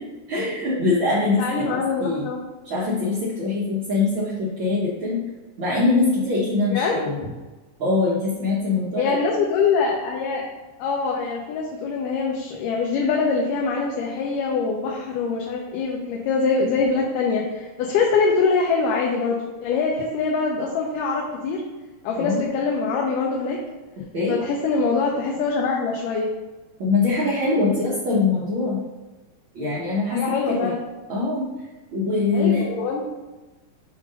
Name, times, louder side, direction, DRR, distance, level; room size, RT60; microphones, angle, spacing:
voice 1, 0.3-2.3 2.6-5.2 5.6-7.2 7.8-9.2 22.2-22.4 24.1-24.4 26.8-28.8 29.5-30.7 31.1-31.5 31.9-32.6, left 3 dB, 70° right, -7 dB, 1.2 m, -23 dB
voice 2, 1.4-2.4 6.7-7.0 9.0-10.5 10.8-21.6 22.0-23.6 24.3-26.3 30.1-30.8 32.3-33.0, left 4 dB, 85° left, -2 dB, 2.4 m, -24 dB
7.5 x 2.6 x 5.2 m, 1.2 s
omnidirectional pair, 3.7 m